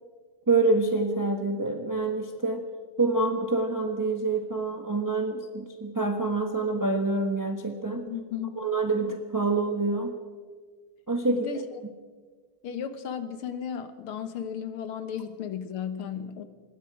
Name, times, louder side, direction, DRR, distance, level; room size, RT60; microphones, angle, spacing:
voice 1, 0.5-2.6 3.0-8.0 8.6-10.1 11.1-11.5, right 3 dB, 10° right, 4 dB, 1.0 m, -26 dB
voice 2, 8.1-8.6 11.3-11.8 12.6-16.4, left 8 dB, 90° left, 10 dB, 2.1 m, -35 dB
26.0 x 20.5 x 5.0 m, 1.5 s
omnidirectional pair, 2.3 m